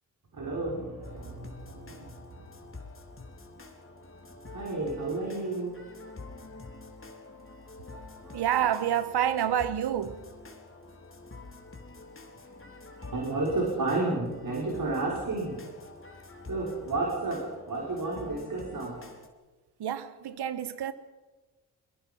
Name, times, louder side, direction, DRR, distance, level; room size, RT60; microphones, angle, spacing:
voice 1, 0.3-2.1 4.5-5.8 8.2-8.4 13.1-15.6 16.5-19.0, right 2 dB, 55° right, 6.0 m, -31 dB
sound 1, 1.0-19.3, left 3 dB, 30° left, 3.8 m, -47 dB
voice 2, 8.3-10.2 19.8-20.9, right 10 dB, 75° right, 1.5 m, -28 dB
25.0 x 21.5 x 5.6 m
supercardioid pair, 55°, 39 cm